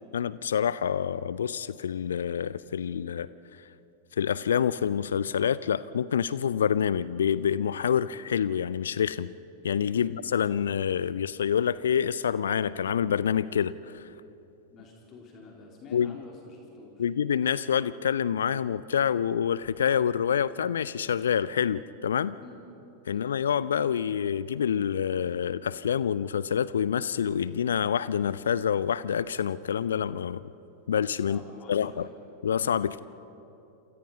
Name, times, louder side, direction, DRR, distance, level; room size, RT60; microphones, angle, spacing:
voice 1, 0.1-3.3 4.2-9.3 9.6-14.1 15.9-16.2 17.0-22.4 23.1-30.5 30.9-31.4 31.7-32.1 32.4-33.0, left 8 dB, 65° left, 18 dB, 0.5 m, -27 dB
voice 2, 14.7-17.0 22.4-22.6 23.1-23.3 31.2-32.1, left 4 dB, 30° left, 0 dB, 3.7 m, -48 dB
28.0 x 27.5 x 5.5 m, 2.9 s
figure-of-eight pair, 90°, 0 cm